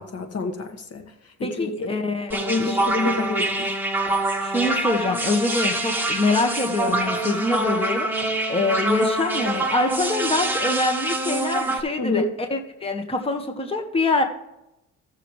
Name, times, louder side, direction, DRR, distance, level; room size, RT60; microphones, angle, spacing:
voice 1, 0.0-1.9 2.3-3.7 6.9-7.0 12.0-12.3, left 3 dB, 55° left, 6 dB, 1.6 m, -28 dB
voice 2, 1.4-2.3 2.6-2.8 4.4-12.2 12.5-14.2, left 2 dB, 20° left, 3 dB, 1.5 m, -25 dB
sound 1, 2.3-11.8, right 2 dB, 5° right, 1.7 m, -25 dB
16.5 x 6.9 x 3.2 m, 0.87 s
cardioid pair, 90°, 30 cm